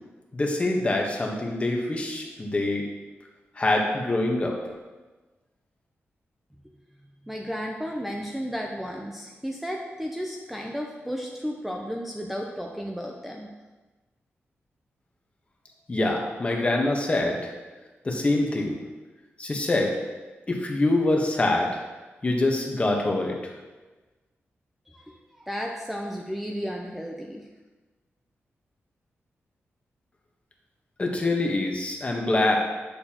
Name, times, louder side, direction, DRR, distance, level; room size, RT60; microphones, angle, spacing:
voice 1, 0.3-2.8 3.6-4.6 15.9-17.5 18.0-18.8 19.4-20.0 20.5-21.8 22.2-23.5 31.0-32.6, left 2 dB, 25° left, 0 dB, 1.1 m, -25 dB
voice 2, 7.2-13.5 24.9-27.4, equal, 5° right, 0 dB, 0.5 m, -33 dB
8.6 x 6.6 x 2.9 m, 1.2 s
wide cardioid pair, 130°, 5 cm